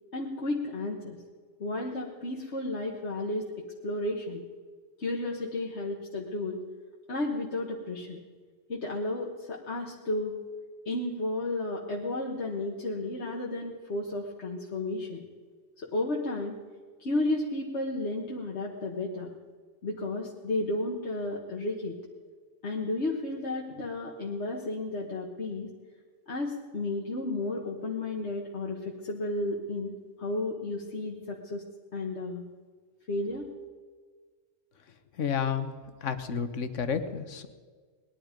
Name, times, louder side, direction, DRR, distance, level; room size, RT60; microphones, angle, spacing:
voice 1, 0.1-1.2 1.6-3.5 3.8-4.4 5.0-6.6 7.1-8.2 8.7-10.3 10.9-15.2 15.8-16.6 17.0-19.3 19.8-21.9 22.6-25.7 26.3-29.9 30.2-31.6 31.9-32.5 33.1-33.5, left 2 dB, 65° left, -2 dB, 1.8 m, -32 dB
voice 2, 35.2-35.7 36.0-37.5, left 7 dB, 85° left, 10 dB, 1.4 m, -30 dB
20.0 x 11.5 x 5.2 m, 1.5 s
omnidirectional pair, 1.2 m